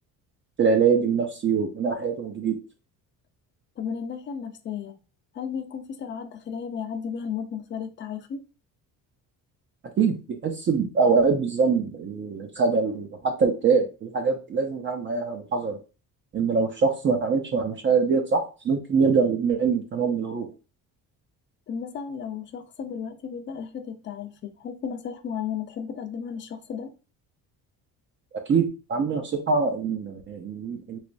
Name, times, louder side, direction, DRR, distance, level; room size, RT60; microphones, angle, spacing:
voice 1, 0.6-2.6 10.0-10.2 10.4-15.8 16.3-20.5 28.5-31.0, right 5 dB, 35° right, 0.4 m, -24 dB
voice 2, 3.8-5.0 5.3-8.5 21.7-26.9, left 7 dB, 35° left, 0.4 m, -34 dB
3.2 x 3.0 x 2.5 m
cardioid pair, 140°, 36 cm